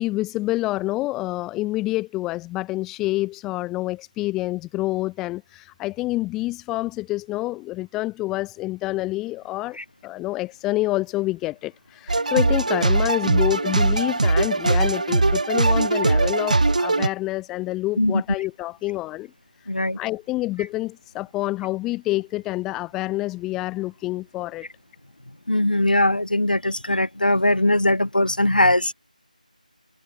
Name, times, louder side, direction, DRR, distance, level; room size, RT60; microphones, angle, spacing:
voice 1, 0.0-9.8 10.0-19.3 20.0-24.7, left 18 dB, 5° left, 0.3 m, -27 dB
sound 1, 12.1-17.1, right 2 dB, 60° right, 1.0 m, -20 dB
voice 2, 19.7-20.0 25.5-28.9, left 1 dB, 85° left, 3.6 m, -20 dB
figure-of-eight pair, 165°, 5 cm